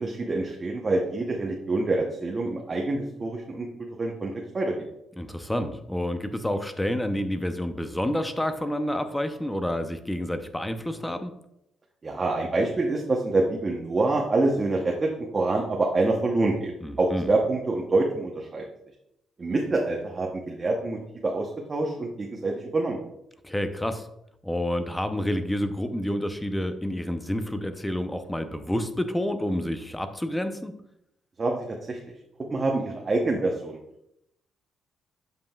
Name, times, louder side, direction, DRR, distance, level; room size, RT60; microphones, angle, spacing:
voice 1, 0.0-3.7 4.0-4.7 12.0-16.7 17.0-18.6 19.4-23.0 31.4-32.0 32.5-33.8, right 2 dB, 30° right, 0 dB, 0.8 m, -26 dB
voice 2, 5.2-11.3 16.8-17.3 23.4-24.1 24.4-30.7, left 1 dB, 10° left, 8 dB, 0.6 m, -29 dB
7.7 x 5.3 x 2.3 m, 0.81 s
cardioid pair, 90°, 0 cm